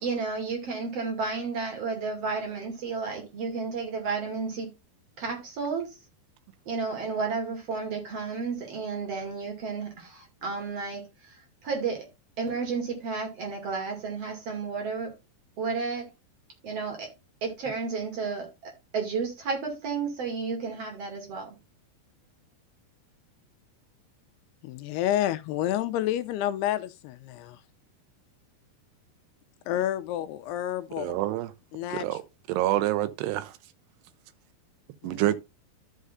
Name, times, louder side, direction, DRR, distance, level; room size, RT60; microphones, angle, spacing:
voice 1, 0.0-4.7 5.2-5.9 6.7-11.0 11.6-12.1 12.4-15.1 15.6-16.0 16.6-17.1 17.4-21.5, right 4 dB, 40° right, 2.9 m, -32 dB
voice 2, 24.6-27.6 29.7-31.2 31.7-32.2 35.0-35.4, left 12 dB, 80° left, 2.5 m, -29 dB
voice 3, 31.0-31.5 31.9-32.2 32.5-33.5 35.0-35.4, right 15 dB, 80° right, 2.8 m, -27 dB
13.0 x 6.5 x 2.6 m
omnidirectional pair, 4.9 m